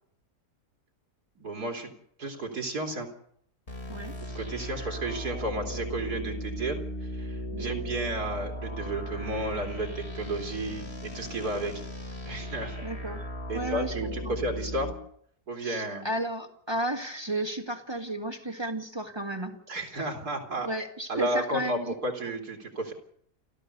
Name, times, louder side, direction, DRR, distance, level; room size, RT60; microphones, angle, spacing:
voice 1, 1.4-1.9 2.2-3.1 4.3-11.7 12.3-12.9 13.5-14.9 15.5-16.1 19.7-20.7 21.1-22.9, right 1 dB, 70° right, 2 dB, 3.7 m, -32 dB
sound 1, 3.7-14.9, equal, 40° left, 3.4 m, -37 dB
voice 2, 12.8-13.2 13.5-14.4 15.6-19.6 19.9-20.1 20.6-21.9, right 1 dB, 15° right, 2 dB, 2.1 m, -33 dB
29.5 x 13.0 x 6.8 m, 0.65 s
omnidirectional pair, 1.7 m